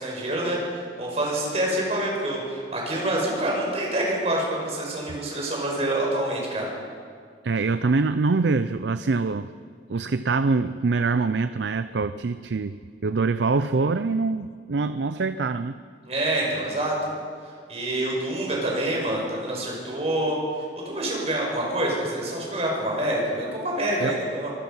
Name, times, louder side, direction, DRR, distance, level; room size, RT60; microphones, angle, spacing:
voice 1, 0.0-6.7 16.1-17.1 17.7-20.4 20.8-24.5, right 1 dB, 35° right, -2 dB, 6.0 m, -26 dB
voice 2, 7.4-9.5 9.9-15.8 24.0-24.2, right 4 dB, 75° right, 12 dB, 0.5 m, -24 dB
24.5 x 19.5 x 5.6 m, 2.1 s
head